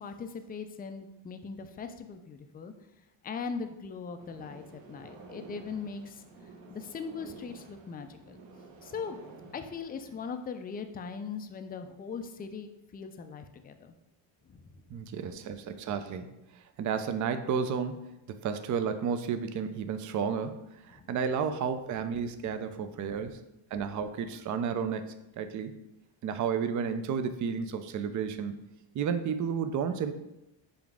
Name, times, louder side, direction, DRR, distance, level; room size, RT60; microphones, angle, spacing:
voice 1, 0.0-2.7 3.2-6.2 6.7-8.4 8.8-9.2 9.5-13.9 14.5-15.0 20.9-21.0, left 5 dB, 20° left, 8 dB, 0.3 m, -40 dB
sound 1, 4.2-10.6, right 3 dB, 65° right, 0.8 m, -51 dB
voice 2, 14.9-20.6 20.8-23.4 23.7-25.8 26.2-28.6 28.9-30.1, right 6 dB, 40° right, 9 dB, 0.4 m, -32 dB
5.2 x 2.4 x 3.5 m, 0.91 s
supercardioid pair, 70°, 48 cm